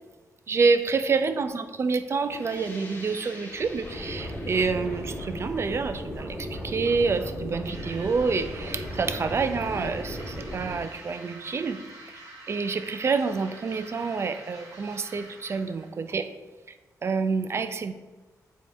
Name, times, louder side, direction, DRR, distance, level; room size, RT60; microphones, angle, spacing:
voice 1, 0.5-11.8 12.1-16.3 17.0-17.9, right 4 dB, 40° right, 10 dB, 0.4 m, -27 dB
sound 1, 2.3-7.8, left 1 dB, 30° left, 1.2 m, -47 dB
sound 2, 3.5-10.8, left 1 dB, 15° left, 2.1 m, -36 dB
sound 3, 7.6-15.9, right 2 dB, 60° right, 2.2 m, -46 dB
7.4 x 3.6 x 4.5 m, 1.3 s
wide cardioid pair, 130°, 7 cm